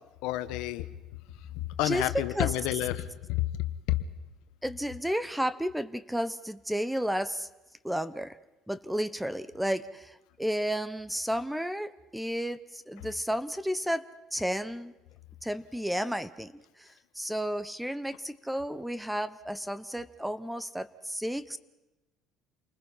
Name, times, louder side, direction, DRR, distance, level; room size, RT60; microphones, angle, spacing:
voice 1, 0.2-0.8 1.8-3.4 3.9-4.0, left 16 dB, 80° left, 12 dB, 1.2 m, -29 dB
voice 2, 4.6-7.5 7.8-8.4 8.7-14.9 15.4-16.5 16.8-16.9 17.1-21.6, equal, 5° right, 15 dB, 1.0 m, -32 dB
29.0 x 20.0 x 5.7 m, 1.0 s
supercardioid pair, 95°, 0 cm